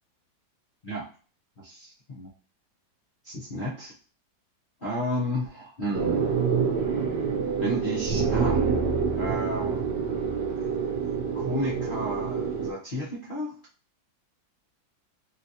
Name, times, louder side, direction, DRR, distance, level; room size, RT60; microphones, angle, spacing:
voice 1, 1.6-2.3 3.2-3.9 4.8-6.4 7.6-8.6 9.2-9.9 10.6-10.7 11.3-13.5, equal, 45° left, -9 dB, 0.7 m, -32 dB
sound 1, 5.9-12.7, right 6 dB, 70° right, 1.2 m, -27 dB
3.8 x 2.4 x 2.8 m, 0.38 s
omnidirectional pair, 2.1 m